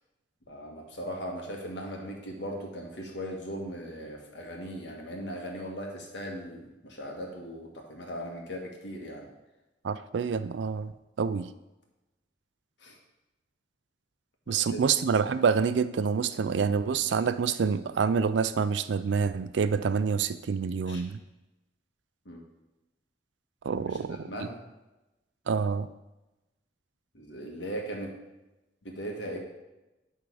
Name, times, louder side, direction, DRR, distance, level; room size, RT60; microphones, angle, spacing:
voice 1, 0.5-9.3 12.8-13.0 14.5-14.8 20.9-21.0 22.2-22.4 23.7-24.6 27.1-28.1 28.8-29.4, equal, 80° left, 0 dB, 1.6 m, -38 dB
voice 2, 9.8-10.9 11.2-11.5 14.5-21.2 23.6-24.3 25.5-25.9, right 6 dB, 80° right, 13 dB, 0.4 m, -27 dB
11.0 x 3.7 x 4.8 m, 1.0 s
head